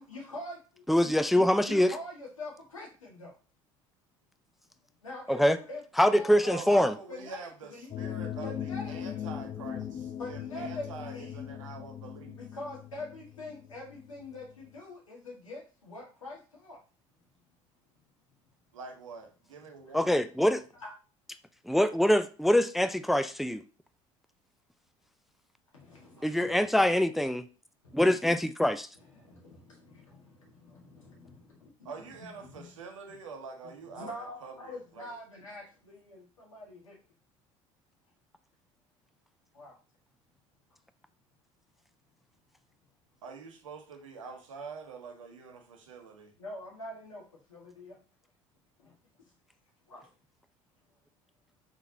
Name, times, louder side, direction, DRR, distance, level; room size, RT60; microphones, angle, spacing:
voice 1, 0.0-0.8 1.6-3.3 5.0-5.8 6.1-7.9 8.4-9.2 10.2-11.5 12.4-16.8 20.8-20.9 25.7-26.5 27.8-28.0 28.9-32.6 33.6-37.0 39.5-39.7 46.4-47.2 47.5-48.0 48.8-48.9 49.9-50.1, left 2 dB, 85° left, 1.6 m, -44 dB
voice 2, 0.9-1.9 5.3-5.6 6.0-6.9 19.9-20.6 21.7-23.6 26.2-27.5 27.9-28.9, left 1 dB, ahead, 0.3 m, -24 dB
voice 3, 6.5-12.4 18.7-20.2 26.2-26.4 31.8-35.1 43.2-46.3, right 5 dB, 80° right, 0.9 m, -45 dB
sound 1, 7.9-14.7, left 9 dB, 35° left, 0.6 m, -39 dB
4.5 x 3.7 x 2.7 m
figure-of-eight pair, 65°, 16 cm